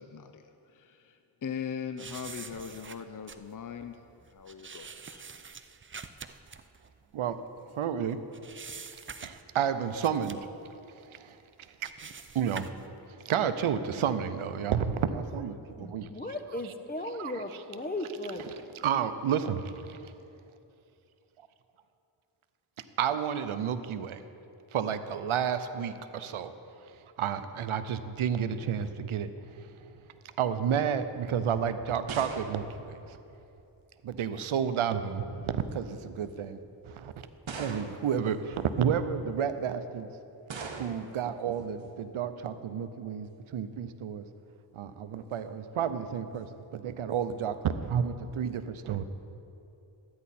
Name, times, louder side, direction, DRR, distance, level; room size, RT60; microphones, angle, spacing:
voice 1, 0.0-4.0 4.3-5.3, left 7 dB, 40° left, 8 dB, 0.6 m, -40 dB
sound 1, 2.0-7.8 8.1-9.6 9.9-10.6 11.1-11.2 11.6-12.8, right 5 dB, 25° right, 0.5 m, -46 dB
voice 2, 7.7-8.2 9.2-10.4 11.1-11.4 11.8-11.9 12.3-12.7 13.2-16.1 17.2-17.3 18.8-20.1 23.0-24.2 24.7-26.5 27.2-29.7 30.4-33.2 34.0-36.6 36.8-37.1 37.6-40.1 40.7-44.2 44.7-46.5 46.7-49.0, right 8 dB, 90° right, 11 dB, 0.6 m, -31 dB
voice 3, 15.8-18.9, left 1 dB, 20° left, 7 dB, 0.9 m, -37 dB
sound 2, 31.5-33.8 34.9-35.3 36.1-36.2 37.5-38.3 40.5-41.2, right 4 dB, 70° right, 1.1 m, -41 dB
13.0 x 9.5 x 4.2 m, 2.8 s
cardioid pair, 45°, 48 cm